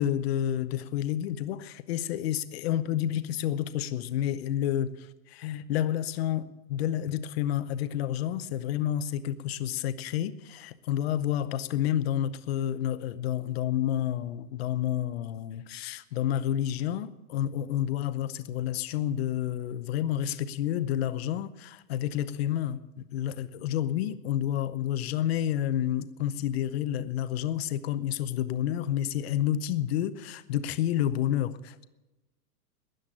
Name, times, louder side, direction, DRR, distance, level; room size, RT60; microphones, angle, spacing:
voice 1, 0.0-31.8, left 11 dB, 40° left, 0.7 m, -30 dB
13.0 x 10.5 x 8.9 m
supercardioid pair, 170°, 46 cm